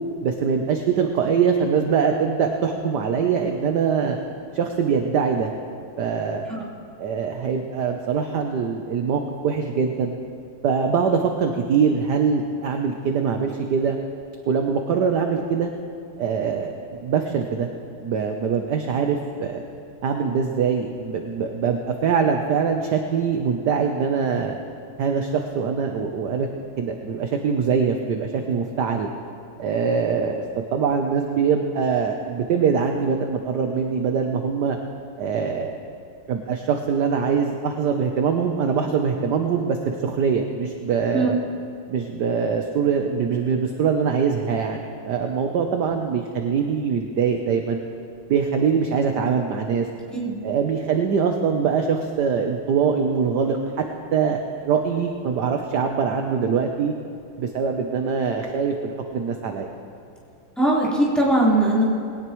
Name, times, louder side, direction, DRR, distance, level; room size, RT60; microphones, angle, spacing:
voice 1, 0.2-4.2 4.5-5.5 6.0-6.5 7.0-10.2 10.6-14.0 14.5-15.7 16.2-17.7 18.0-19.6 20.0-24.6 25.0-26.5 26.8-29.1 29.6-30.4 30.7-34.8 35.2-35.8 36.3-41.4 41.9-44.8 45.1-47.8 48.3-49.9 50.4-53.8 54.1-56.9 57.4-59.7, right 6 dB, 60° right, 4 dB, 1.3 m, -23 dB
voice 2, 60.6-61.8, right 1 dB, ahead, -8 dB, 3.8 m, -20 dB
21.0 x 18.0 x 3.1 m, 2.4 s
omnidirectional pair, 2.3 m